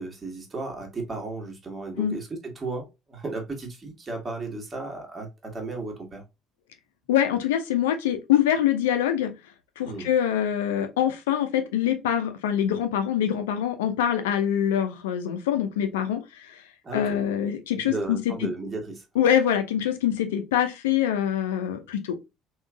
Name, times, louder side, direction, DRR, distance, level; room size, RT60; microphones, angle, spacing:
voice 1, 0.0-6.2 9.8-10.1 16.8-17.2 17.8-19.0, right 3 dB, 25° right, 1.3 m, -34 dB
voice 2, 7.1-9.3 9.8-16.6 16.9-18.5 19.2-22.2, left 10 dB, 75° left, 0.5 m, -24 dB
3.6 x 2.4 x 2.2 m
hypercardioid pair, 60°, 0 cm